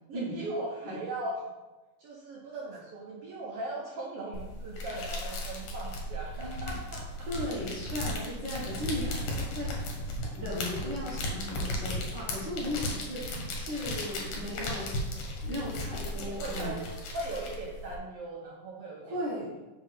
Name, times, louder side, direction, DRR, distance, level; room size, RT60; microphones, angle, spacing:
voice 1, 0.1-1.5 2.0-7.3 14.4-14.7 15.2-15.3 16.1-19.2, right 2 dB, 80° right, -3 dB, 1.3 m, -39 dB
sound 1, 4.3-18.0, left 1 dB, 70° left, 2.3 m, -36 dB
voice 2, 6.4-6.8 7.2-9.9 10.2-15.1 15.4-16.8 19.0-19.5, left 1 dB, 55° right, -7 dB, 1.3 m, -36 dB
5.1 x 3.7 x 5.3 m, 1.1 s
omnidirectional pair, 3.6 m